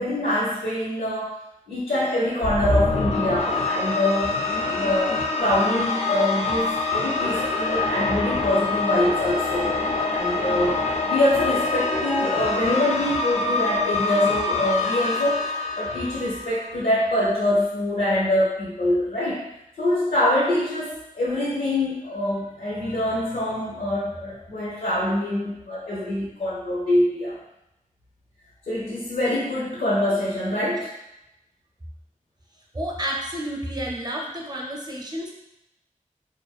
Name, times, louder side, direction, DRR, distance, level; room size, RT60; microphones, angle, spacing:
voice 1, 0.0-1.4 1.7-4.4 4.7-5.1 5.4-10.8 11.1-19.4 19.8-27.3 28.7-30.9, left 1 dB, 85° left, -8 dB, 0.7 m, -24 dB
sound 1, 2.4-16.8, left 3 dB, 50° left, 0.4 m, -25 dB
voice 2, 32.7-35.3, right 1 dB, 30° right, -1 dB, 0.5 m, -30 dB
2.5 x 2.2 x 2.3 m, 0.89 s
wide cardioid pair, 50°, 14 cm